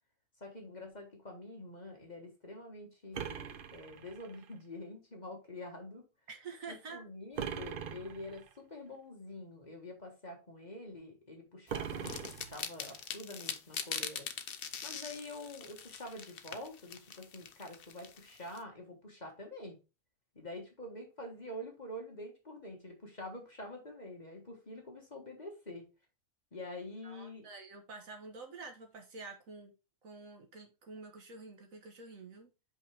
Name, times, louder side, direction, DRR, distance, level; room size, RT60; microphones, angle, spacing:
voice 1, 0.4-6.0 6.7-14.3 14.8-19.8 20.3-25.8 26.5-27.5, left 1 dB, 30° left, 1.4 m, -46 dB
sound 1, 3.1-4.5 7.4-8.5 11.7-13.0, right 8 dB, 85° right, 0.4 m, -41 dB
voice 2, 6.3-7.1 27.0-29.7 30.0-32.5, right 4 dB, 60° right, 1.6 m, -48 dB
sound 2, 11.7-18.6, left 7 dB, 50° left, 0.7 m, -42 dB
5.4 x 5.4 x 3.4 m
omnidirectional pair, 1.6 m